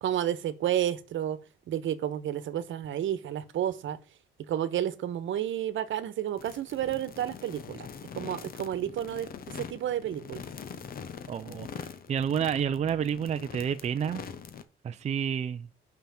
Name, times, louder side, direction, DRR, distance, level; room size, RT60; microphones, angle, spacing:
voice 1, 0.0-1.4 1.7-4.0 4.5-7.9 8.1-9.3 9.6-10.4, right 11 dB, 70° right, 1.1 m, -31 dB
sound 1, 6.4-14.6, left 7 dB, 45° left, 0.9 m, -43 dB
voice 2, 11.3-14.2 14.8-15.7, right 8 dB, 35° right, 0.4 m, -30 dB
5.9 x 5.7 x 7.0 m
cardioid pair, 155°, 21 cm